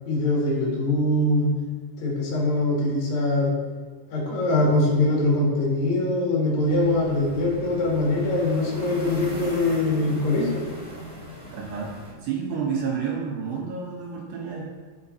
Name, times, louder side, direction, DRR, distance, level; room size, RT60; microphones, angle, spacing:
voice 1, 0.0-1.5 2.0-3.5 4.1-10.6, left 2 dB, 45° left, -5 dB, 2.6 m, -23 dB
sound 1, 6.6-12.1, equal, 65° left, 0.4 m, -40 dB
voice 2, 11.5-11.9 12.2-14.8, right 6 dB, 75° right, -3 dB, 2.7 m, -30 dB
11.5 x 7.2 x 2.8 m, 1.4 s
omnidirectional pair, 5.9 m